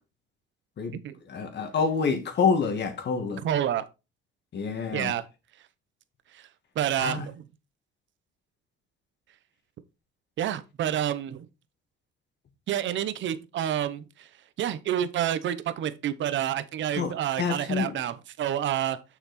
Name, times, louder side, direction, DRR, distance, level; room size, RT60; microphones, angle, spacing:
voice 1, 1.3-3.4 4.5-5.1 7.0-7.3 17.0-18.0, left 5 dB, 60° left, 2.1 m, -27 dB
voice 2, 3.4-3.8 4.9-5.2 6.3-6.5 6.8-7.4 10.4-11.5 12.7-14.3 14.6-19.0, right 10 dB, 70° right, 0.9 m, -28 dB
6.9 x 5.9 x 4.2 m
cardioid pair, 90°, 20 cm